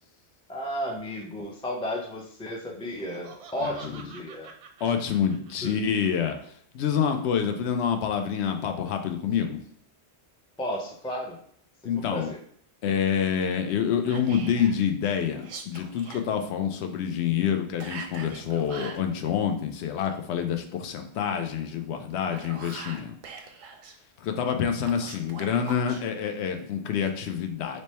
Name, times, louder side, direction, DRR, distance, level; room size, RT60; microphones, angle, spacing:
voice 1, 0.5-4.5 5.6-5.8 10.6-11.4 11.8-12.4, equal, 10° left, -1 dB, 0.3 m, -33 dB
Laughter, 2.8-6.1, right 6 dB, 85° right, 0.9 m, -48 dB
voice 2, 3.6-4.1 4.8-9.6 11.8-12.3 12.8-23.2 24.2-27.8, left 8 dB, 80° left, 5 dB, 0.8 m, -27 dB
Whispering, 14.1-14.8 15.4-16.2 17.8-19.0 22.1-23.9 24.8-26.0, right 5 dB, 60° right, 0.6 m, -42 dB
3.3 x 2.1 x 4.2 m, 0.63 s
omnidirectional pair, 1.1 m